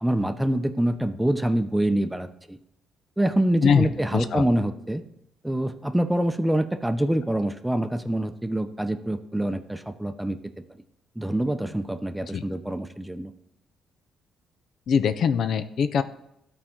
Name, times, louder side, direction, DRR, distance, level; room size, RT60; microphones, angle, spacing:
voice 1, 0.0-2.6 3.2-5.0 5.4-10.4 11.2-13.3, right 1 dB, 5° right, 8 dB, 0.7 m, -25 dB
voice 2, 4.1-4.4 12.3-12.4 14.9-16.0, left 7 dB, 65° left, 10 dB, 0.5 m, -22 dB
13.0 x 4.3 x 3.7 m, 0.81 s
supercardioid pair, 65°, 0 cm